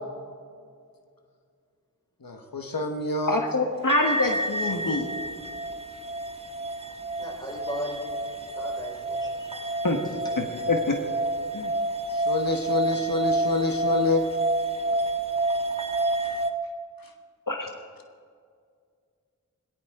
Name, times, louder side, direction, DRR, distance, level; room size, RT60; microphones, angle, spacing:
voice 1, 2.2-3.4 12.1-14.2 16.2-16.4, left 3 dB, 90° left, 4 dB, 1.2 m, -27 dB
voice 2, 3.3-5.1 9.8-10.0 10.4-11.0 11.5-11.7 17.5-17.7, left 2 dB, 70° left, 2 dB, 1.4 m, -25 dB
sound 1, 3.9-16.5, right 2 dB, 20° right, 1.2 m, -29 dB
voice 3, 7.2-8.2 8.6-9.7, equal, 10° left, -2 dB, 4.9 m, -36 dB
20.0 x 17.5 x 3.7 m, 2.1 s
wide cardioid pair, 45°, 34 cm